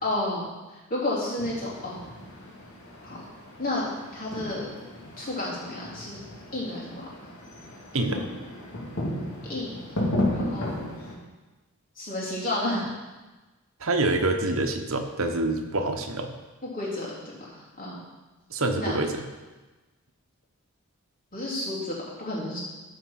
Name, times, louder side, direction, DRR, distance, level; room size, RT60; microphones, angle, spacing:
voice 1, 0.0-2.1 3.0-3.2 3.6-3.8 4.1-4.7 5.2-6.2 6.5-7.0 9.5-9.9 10.3-10.8 12.0-12.9 16.7-18.0 18.7-18.9 21.3-22.6, left 1 dB, 40° left, -6 dB, 3.4 m, -31 dB
sound 1, 1.4-11.1, left 1 dB, 70° left, 2.6 m, -34 dB
voice 2, 7.9-8.2 13.8-16.4 18.5-19.2, right 2 dB, 65° right, 4 dB, 1.1 m, -26 dB
13.5 x 5.1 x 5.8 m, 1.2 s
head